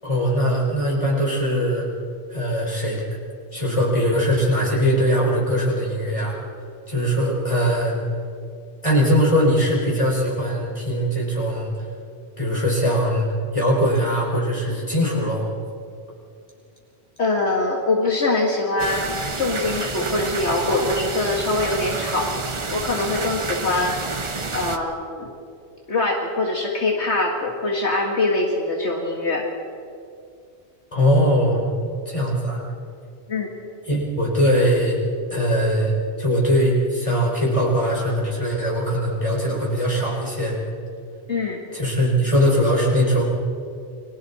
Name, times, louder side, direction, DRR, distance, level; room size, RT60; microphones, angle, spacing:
voice 1, 0.0-1.9 2.3-3.0 3.5-6.4 6.9-8.0 8.8-11.7 12.4-15.5 30.9-31.7 32.1-32.6 33.8-35.0 35.3-35.9 36.2-40.6 41.7-43.2, equal, 25° left, -4 dB, 5.4 m, -21 dB
voice 2, 17.2-22.3 22.7-23.9 24.5-25.3 25.9-29.5 33.3-33.5 41.3-41.6, left 2 dB, 70° left, 0 dB, 2.1 m, -23 dB
sound 1, 18.8-24.8, right 3 dB, 30° right, 0.9 m, -29 dB
29.5 x 23.0 x 4.3 m, 2.4 s
omnidirectional pair, 1.2 m